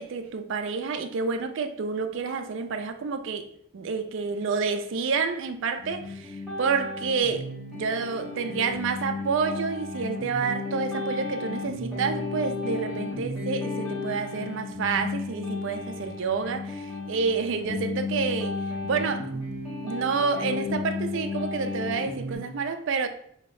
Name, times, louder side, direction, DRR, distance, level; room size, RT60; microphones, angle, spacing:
voice 1, 0.0-19.4 19.8-23.1, right 5 dB, 60° right, 0.4 m, -29 dB
sound 1, 5.8-22.4, left 3 dB, 5° right, 1.4 m, -33 dB
4.1 x 2.7 x 3.1 m
head